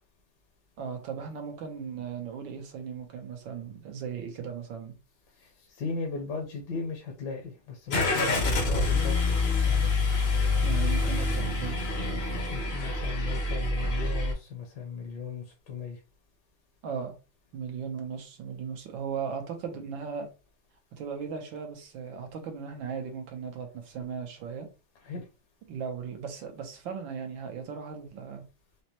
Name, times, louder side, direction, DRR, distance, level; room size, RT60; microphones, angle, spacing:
voice 1, 0.8-4.9 10.6-11.8 16.8-17.1 17.5-20.3 20.9-24.7 25.7-28.4, right 6 dB, 70° right, 1.5 m, -37 dB
voice 2, 5.4-9.3 9.6-9.9 12.5-16.0 25.0-25.2, left 5 dB, 65° left, 1.4 m, -37 dB
Car / Engine starting, 7.9-14.3, left 3 dB, 50° left, 0.8 m, -26 dB
5.1 x 2.1 x 2.9 m
omnidirectional pair, 2.2 m